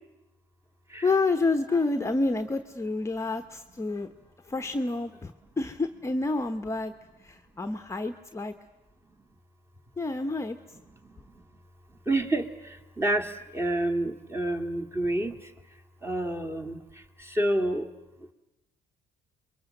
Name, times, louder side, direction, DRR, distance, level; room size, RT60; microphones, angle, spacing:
voice 1, 1.0-4.1 4.4-6.9 7.2-8.5 10.0-10.6, left 3 dB, 15° left, 6 dB, 1.0 m, -28 dB
voice 2, 12.1-12.4 13.0-15.4 16.0-16.8 17.2-17.9, right 1 dB, 15° right, 6 dB, 2.1 m, -28 dB
29.0 x 22.5 x 7.8 m, 1.0 s
cardioid pair, 110°, 17 cm